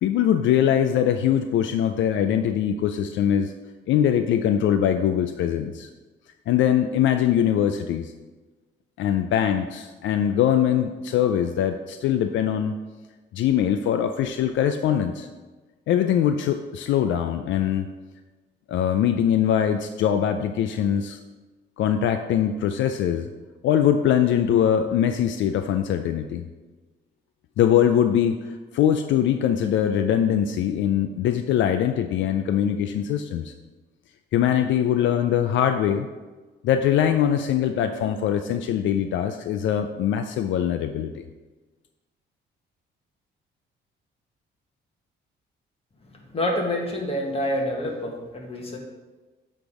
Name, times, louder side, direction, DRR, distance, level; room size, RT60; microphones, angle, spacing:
voice 1, 0.0-3.5 3.9-5.9 6.5-8.1 9.0-12.7 13.3-15.3 15.9-17.9 18.7-21.2 21.8-23.3 23.6-26.4 27.6-33.5 34.3-36.1 36.6-41.2, left 9 dB, 75° left, 8 dB, 0.4 m, -22 dB
voice 2, 46.1-48.8, left 1 dB, 30° left, 0 dB, 1.6 m, -27 dB
8.1 x 3.5 x 4.9 m, 1.3 s
cardioid pair, 90°, 20 cm